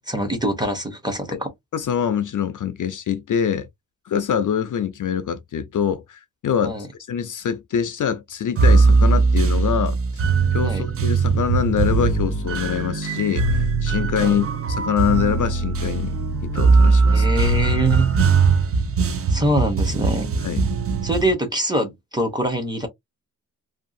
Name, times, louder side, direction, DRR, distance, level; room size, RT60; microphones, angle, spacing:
voice 1, 0.0-1.5 6.6-6.9 10.6-10.8 14.2-14.4 17.1-18.1 19.3-20.3 21.0-22.9, right 1 dB, 10° right, 0.8 m, -24 dB
voice 2, 1.7-3.7 4.1-6.8 7.1-10.2 10.5-16.1 16.4-17.3 20.4-20.7, left 8 dB, 55° left, 0.4 m, -24 dB
sound 1, 8.6-21.3, right 4 dB, 40° right, 0.4 m, -20 dB
2.6 x 2.4 x 2.5 m
wide cardioid pair, 145°, 37 cm